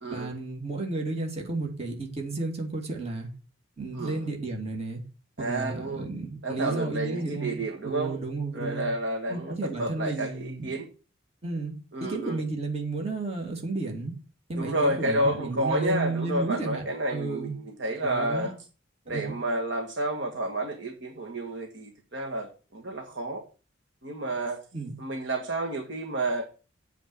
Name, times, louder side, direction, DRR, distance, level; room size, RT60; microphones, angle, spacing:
voice 1, 0.1-3.3 3.8-5.0 5.4-8.9 9.3-10.8 11.4-11.7 12.0-14.1 14.5-16.8 17.1-17.5 18.0-18.5 19.1-19.3 24.7-25.0, right 3 dB, 30° right, 1 dB, 2.4 m, -32 dB
voice 2, 5.4-6.1 6.4-8.2 8.5-10.9 11.9-12.4 14.6-18.5 19.1-23.4 24.0-24.6 25.0-26.5, right 1 dB, 65° right, 2 dB, 1.6 m, -30 dB
8.1 x 4.7 x 7.1 m, 0.34 s
head